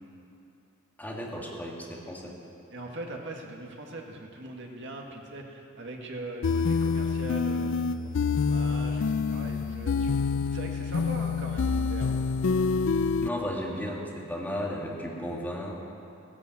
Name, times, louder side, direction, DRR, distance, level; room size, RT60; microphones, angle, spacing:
voice 1, 1.0-2.4 13.2-15.7, equal, 10° left, -3 dB, 2.1 m, -34 dB
voice 2, 2.7-10.2 10.5-12.2, right 1 dB, 60° right, 1 dB, 1.9 m, -41 dB
sound 1, 6.4-13.3, left 5 dB, 60° left, 0.4 m, -27 dB
15.5 x 11.0 x 7.7 m, 2.7 s
head